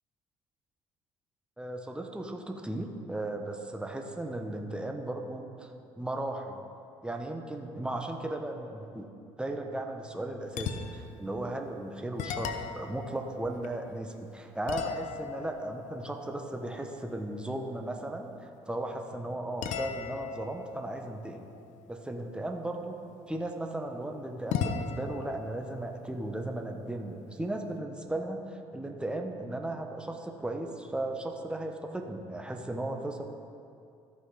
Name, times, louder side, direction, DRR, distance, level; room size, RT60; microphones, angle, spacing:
voice 1, 1.6-6.6 7.0-9.1 9.4-21.5 21.9-23.0 23.3-33.3, right 1 dB, 5° right, 3 dB, 1.0 m, -36 dB
sound 1, 10.5-11.2 11.7-11.8 12.2-14.1 14.7-17.3 19.6-22.3 24.5-27.1, left 7 dB, 65° left, 0.6 m, -39 dB
14.0 x 5.4 x 3.8 m, 2.5 s
hypercardioid pair, 55°, 14 cm